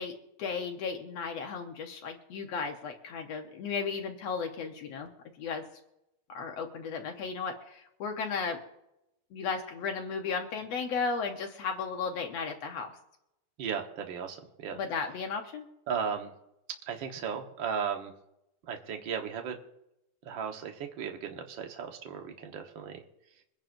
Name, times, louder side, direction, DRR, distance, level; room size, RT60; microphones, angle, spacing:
voice 1, 0.0-5.1 5.4-5.7 6.3-8.6 9.3-12.9 14.7-15.7, left 5 dB, 65° left, 3 dB, 1.9 m, -35 dB
voice 2, 13.6-14.8 15.9-16.3 16.9-18.1 18.7-19.5 20.2-23.0, right 7 dB, 55° right, 3 dB, 1.5 m, -35 dB
24.0 x 10.5 x 2.6 m, 0.85 s
omnidirectional pair, 3.6 m